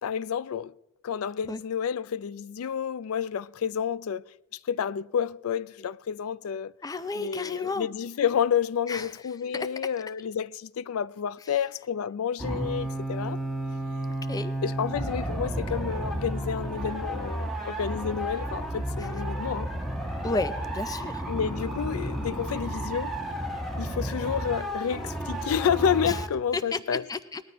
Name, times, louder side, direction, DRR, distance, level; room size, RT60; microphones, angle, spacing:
voice 1, 0.0-0.7 1.0-4.2 4.7-6.7 7.2-13.4 14.6-19.7 21.3-23.1 23.8-27.1, left 7 dB, 80° left, 0.4 m, -30 dB
voice 2, 6.8-7.9 8.9-9.1 9.5-9.7 14.3-14.5 20.2-21.2 26.1-26.2 26.5-26.8 27.1-27.4, left 3 dB, 15° left, 0.4 m, -32 dB
sound 1, 12.4-26.3, right 1 dB, ahead, 1.6 m, -32 dB
19.5 x 13.5 x 3.0 m
head